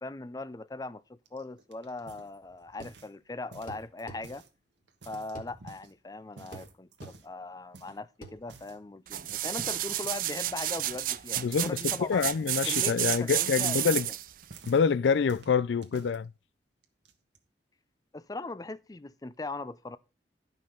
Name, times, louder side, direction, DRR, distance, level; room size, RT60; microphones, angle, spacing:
voice 1, 0.0-4.4 5.1-12.3 12.7-14.0 18.1-20.0, left 2 dB, 20° left, 0.4 m, -40 dB
sound 1, 1.3-3.2 3.5-4.5 4.9-5.9 6.4-7.3 7.7-8.0 8.4-8.8 9.3-9.6 10.0-10.3 10.5-11.2 11.5-14.8 15.3-16.2 16.8-17.4, right 3 dB, 85° right, 1.3 m, -52 dB
sound 2, 2.8-3.0 3.7-4.2 5.4-5.5 6.5-6.7 7.0-7.2 8.2-8.4, right 1 dB, 45° left, 1.9 m, -44 dB
sound 3, 9.1-14.3 14.8-14.9, right 13 dB, 50° right, 0.5 m, -31 dB
voice 2, 11.4-14.1 14.7-16.3, left 6 dB, 80° left, 0.4 m, -26 dB
11.5 x 5.4 x 5.2 m
head